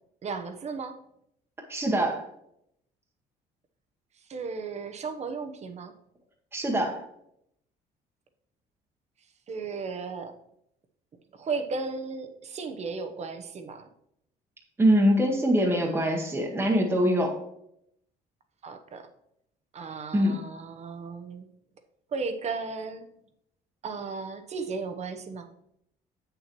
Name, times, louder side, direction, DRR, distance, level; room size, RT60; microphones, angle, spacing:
voice 1, 0.2-1.0 4.3-5.9 9.5-10.3 11.3-13.9 18.6-19.1 19.7-21.5 22.1-23.1 23.8-25.5, right 4 dB, 40° right, 7 dB, 0.9 m, -35 dB
voice 2, 1.7-2.2 6.5-7.0 14.8-17.3 20.1-20.4, equal, 15° right, 0 dB, 1.1 m, -23 dB
7.7 x 6.7 x 3.0 m, 0.76 s
cardioid pair, 110°, 17 cm